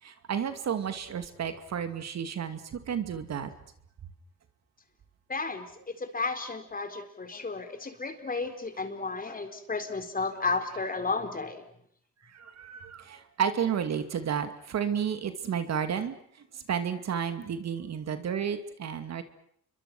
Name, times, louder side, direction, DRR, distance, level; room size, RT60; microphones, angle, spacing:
voice 1, 0.0-3.5 12.2-16.2 16.5-19.2, right 8 dB, 60° right, 9 dB, 2.5 m, -32 dB
voice 2, 5.3-11.6, left 4 dB, 30° left, 7 dB, 4.3 m, -33 dB
29.0 x 23.5 x 6.3 m, 0.66 s
cardioid pair, 90°, 30 cm